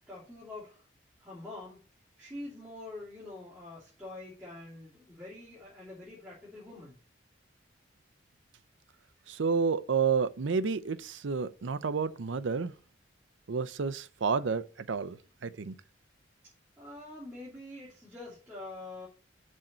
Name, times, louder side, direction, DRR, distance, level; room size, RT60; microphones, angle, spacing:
voice 1, 0.1-0.8 1.2-1.8 2.2-6.9 16.8-19.1, left 2 dB, 10° right, 3.1 m, -45 dB
voice 2, 9.3-12.7 13.5-15.2 15.4-15.7, right 5 dB, 85° right, 0.6 m, -30 dB
6.3 x 4.4 x 6.4 m
head